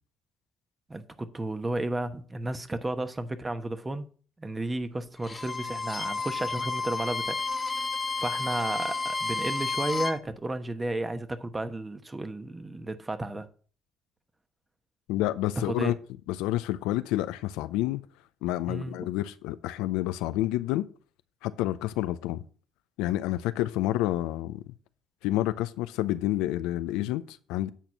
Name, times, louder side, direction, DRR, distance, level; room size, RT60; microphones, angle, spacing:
voice 1, 0.9-4.1 4.4-7.4 8.2-13.5 15.6-15.9 18.7-19.1, right 2 dB, 20° right, 1.1 m, -33 dB
Bowed string instrument, 5.2-10.2, left 3 dB, 25° left, 1.3 m, -31 dB
voice 2, 15.1-15.9 16.3-18.0 18.4-20.8 21.4-22.4 23.0-24.6 25.2-27.7, left 15 dB, 85° left, 0.5 m, -29 dB
9.1 x 4.3 x 6.0 m
supercardioid pair, 70°, 0 cm